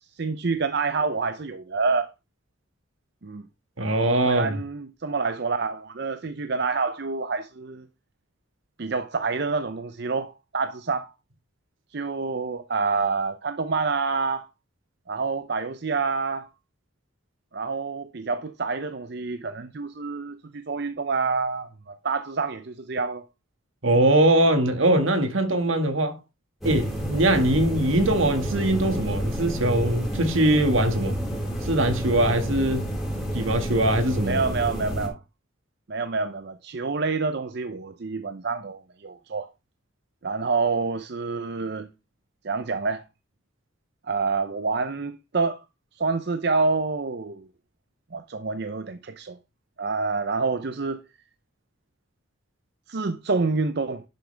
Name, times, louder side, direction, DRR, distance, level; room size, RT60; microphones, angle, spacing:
voice 1, 0.1-2.1 3.2-3.4 4.2-7.9 8.8-11.1 11.9-14.5 15.1-16.5 17.5-23.2 34.3-35.2 35.9-39.5 40.2-41.9 42.4-43.0 44.1-45.6 46.0-47.5 48.1-49.4 49.8-51.0 52.9-54.0, right 4 dB, 55° right, 0.6 m, -27 dB
voice 2, 3.8-4.6 23.8-26.2 26.6-31.1 31.6-32.9 33.3-34.4, right 1 dB, 75° right, 1.9 m, -22 dB
sound 1, 26.6-35.1, equal, ahead, 4.2 m, -30 dB
11.0 x 7.7 x 3.4 m
head